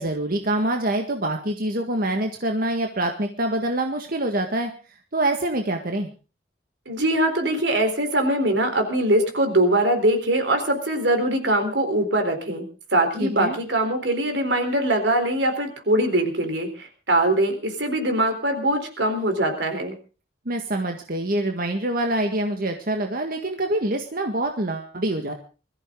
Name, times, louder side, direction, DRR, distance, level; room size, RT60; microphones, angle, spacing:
voice 1, 0.0-4.7 5.1-6.1 13.2-13.6 20.5-25.3, right 1 dB, 55° right, 4 dB, 1.8 m, -25 dB
voice 2, 6.9-12.7 12.9-19.9, right 1 dB, 85° right, 6 dB, 4.0 m, -22 dB
21.5 x 14.5 x 3.8 m, 0.35 s
head